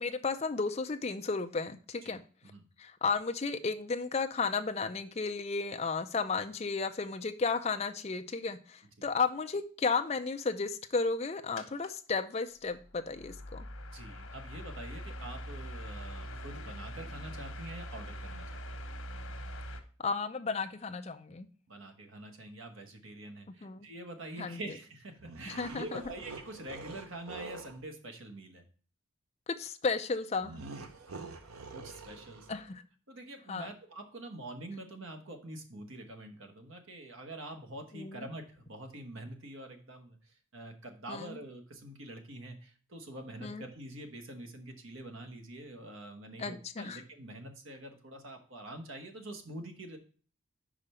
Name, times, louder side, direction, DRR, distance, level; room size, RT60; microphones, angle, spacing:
voice 1, 0.0-2.2 2.8-13.6 20.0-21.5 23.6-23.9 24.4-24.6 25.5-26.0 29.6-30.6 32.5-32.8 33.5-33.7 37.9-38.3 41.1-41.4 43.4-43.6 46.4-47.0, left 4 dB, 30° left, 7 dB, 0.5 m, -33 dB
sound 1, 11.6-11.9 12.8-19.8, equal, 85° left, 1.1 m, -43 dB
voice 2, 13.9-18.8 21.7-28.6 31.0-32.5 33.1-50.0, right 1 dB, 70° right, 5 dB, 1.2 m, -46 dB
sound 2, 25.2-27.8 30.4-32.7, right 3 dB, 85° right, 0.8 m, -46 dB
5.0 x 5.0 x 5.5 m, 0.41 s
head